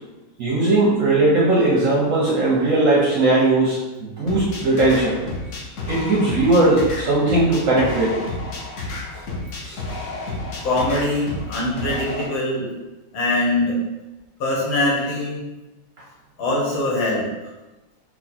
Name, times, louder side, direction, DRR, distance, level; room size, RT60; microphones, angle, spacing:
voice 1, 0.4-5.2 5.9-8.2 9.6-9.8, right 2 dB, 60° right, -5 dB, 0.8 m, -18 dB
sound 1, 4.3-12.3, left 2 dB, 60° left, 0.8 m, -31 dB
voice 2, 10.6-12.7 13.1-13.8 14.4-15.4 16.4-17.3, left 2 dB, 90° left, -4 dB, 1.9 m, -22 dB
4.5 x 2.4 x 4.2 m, 1.1 s
omnidirectional pair, 2.1 m